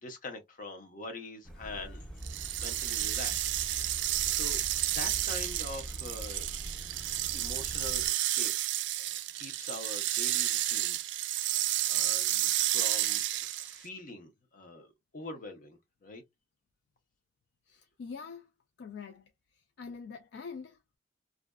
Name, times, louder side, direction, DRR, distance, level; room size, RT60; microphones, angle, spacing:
voice 1, 0.0-2.0 2.6-4.6 4.9-6.5 7.3-8.5 9.0-11.0 11.4-16.2, left 2 dB, 50° left, 0.8 m, -44 dB
sound 1, 1.4-8.1, right 1 dB, 5° left, 0.5 m, -43 dB
sound 2, 2.2-13.9, right 14 dB, 85° right, 0.3 m, -31 dB
voice 2, 17.7-18.5 18.8-19.2 19.5-21.0, left 5 dB, 65° left, 0.3 m, -44 dB
2.5 x 2.2 x 2.2 m
head